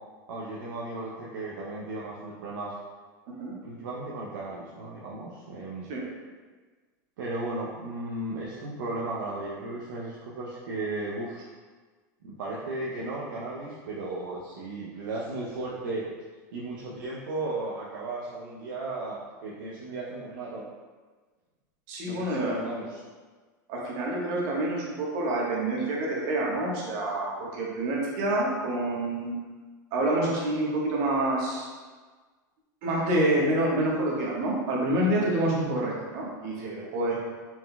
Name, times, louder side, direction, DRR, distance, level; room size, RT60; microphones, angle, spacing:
voice 1, 0.3-2.7 3.6-5.9 7.2-11.4 12.2-16.0 16.5-20.6 22.0-23.0, right 2 dB, 80° right, -5 dB, 0.6 m, -35 dB
voice 2, 21.9-22.6 23.7-29.3 29.9-31.7 32.8-37.2, right 1 dB, 60° right, -3 dB, 1.2 m, -27 dB
4.3 x 3.8 x 2.2 m, 1.4 s
hypercardioid pair, 105°, 11 cm